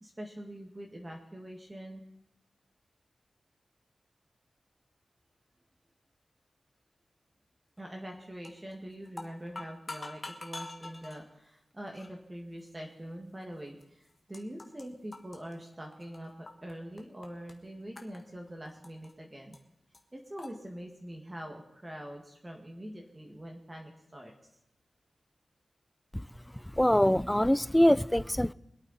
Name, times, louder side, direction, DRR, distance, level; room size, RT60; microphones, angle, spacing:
voice 1, 0.0-2.0 7.8-19.6 20.1-24.5, equal, 20° right, 2.0 m, -44 dB
sound 1, 8.4-8.7 9.1-11.2 11.9-12.1 12.9-13.0 13.8-13.9 14.1-14.9 15.1-16.7 17.0-17.5 18.0-19.1 19.5-19.6 19.9-20.0 20.4-20.5, left 2 dB, 35° left, 1.6 m, -44 dB
voice 2, 26.7-28.5, left 1 dB, 10° left, 0.4 m, -24 dB
23.5 x 8.9 x 4.2 m
wide cardioid pair, 85°, 0 cm